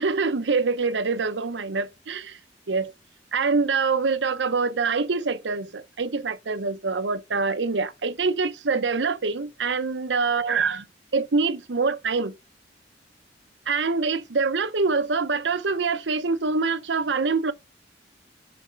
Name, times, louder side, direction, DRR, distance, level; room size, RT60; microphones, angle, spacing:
voice 1, 0.0-2.3 2.7-2.9 3.3-10.8 11.1-12.3 13.7-17.5, right 4 dB, 90° right, 0.8 m, -25 dB
8.7 x 4.2 x 5.1 m
head